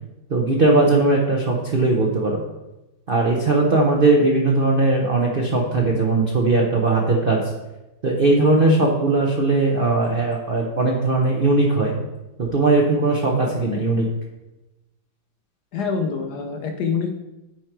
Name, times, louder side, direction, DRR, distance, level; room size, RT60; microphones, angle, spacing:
voice 1, 0.3-2.4 3.1-7.4 8.0-11.9 12.4-14.1, right 2 dB, 55° right, -1 dB, 0.6 m, -19 dB
voice 2, 15.7-17.1, left 5 dB, 65° left, 4 dB, 1.1 m, -25 dB
8.8 x 4.5 x 4.5 m, 0.99 s
omnidirectional pair, 2.2 m